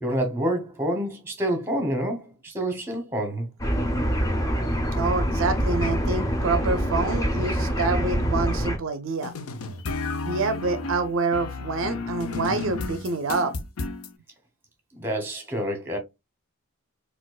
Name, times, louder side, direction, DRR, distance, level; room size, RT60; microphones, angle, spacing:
voice 1, 0.0-3.5 14.9-16.0, right 1 dB, 10° right, 0.9 m, -28 dB
sound 1, 3.6-8.8, equal, 15° left, 0.7 m, -25 dB
voice 2, 4.9-9.3 10.2-13.5, right 3 dB, 60° right, 0.4 m, -27 dB
sound 2, 9.2-14.1, left 3 dB, 80° left, 0.5 m, -32 dB
4.3 x 2.4 x 2.3 m
head